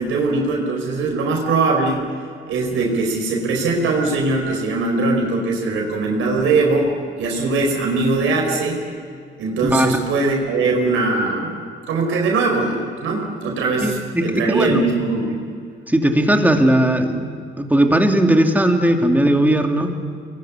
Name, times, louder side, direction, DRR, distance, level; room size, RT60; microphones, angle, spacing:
voice 1, 0.0-2.0 2.5-8.8 9.4-11.6 11.9-15.4, right 3 dB, 85° right, 1 dB, 4.8 m, -21 dB
voice 2, 13.8-14.9 15.9-17.3 17.6-19.9, right 1 dB, 10° right, 3 dB, 2.9 m, -17 dB
23.5 x 21.0 x 10.0 m, 2.2 s
cardioid pair, 90°, 20 cm